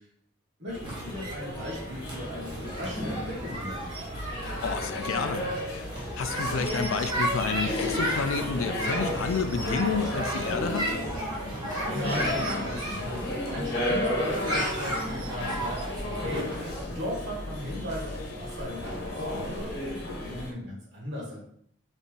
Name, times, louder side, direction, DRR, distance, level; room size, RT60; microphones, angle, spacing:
voice 1, 0.6-3.9 11.9-21.4, equal, 55° right, -4 dB, 1.8 m, -37 dB
sound 1, 0.7-20.5, left 1 dB, 50° left, 1.1 m, -33 dB
sound 2, 0.8-16.8, right 1 dB, 20° right, 1.2 m, -34 dB
voice 2, 4.4-5.9 6.2-10.9, left 5 dB, 65° left, 10 dB, 0.4 m, -30 dB
4.0 x 3.5 x 3.8 m, 0.67 s
head